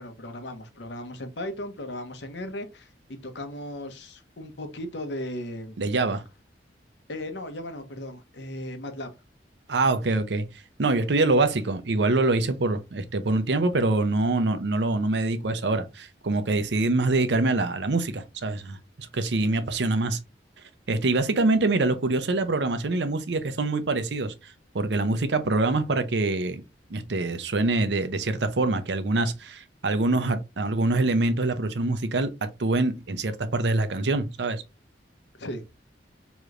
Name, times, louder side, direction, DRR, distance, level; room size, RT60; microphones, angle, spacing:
voice 1, 0.0-5.8 7.1-9.1 35.3-35.7, left 1 dB, 80° left, 0.9 m, -36 dB
voice 2, 5.8-6.2 9.7-10.4 10.8-20.2 20.9-24.3 24.7-26.6 26.9-32.3 32.6-34.6, right 2 dB, 75° right, 0.6 m, -25 dB
4.8 x 3.1 x 2.5 m
head